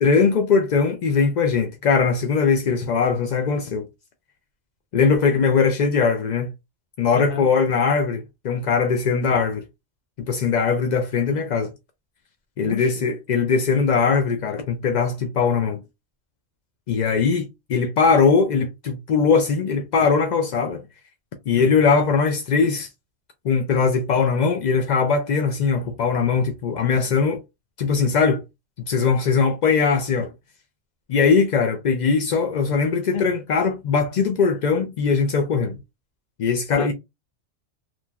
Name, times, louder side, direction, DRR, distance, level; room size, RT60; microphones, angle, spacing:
voice 1, 0.0-3.9 4.9-6.5 7.0-9.6 10.2-11.7 12.6-15.8 16.9-20.8 21.5-22.9 23.4-27.4 27.8-28.4 28.8-30.3 31.1-35.8 36.4-36.9, left 5 dB, 70° left, 0.4 m, -20 dB
voice 2, 7.1-7.5 12.6-12.9 33.1-33.3 36.7-36.9, left 4 dB, 50° left, 0.9 m, -31 dB
3.0 x 2.5 x 2.3 m
omnidirectional pair, 1.3 m